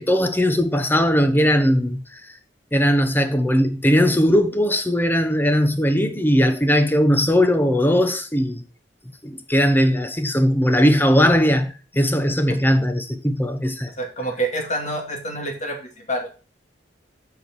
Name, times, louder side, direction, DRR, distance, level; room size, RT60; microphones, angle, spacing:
voice 1, 0.0-2.4 2.7-8.6 9.2-13.9, equal, 10° left, 1.0 m, -19 dB
voice 2, 14.0-16.3, right 1 dB, 40° left, 2.4 m, -27 dB
7.9 x 5.1 x 6.2 m
head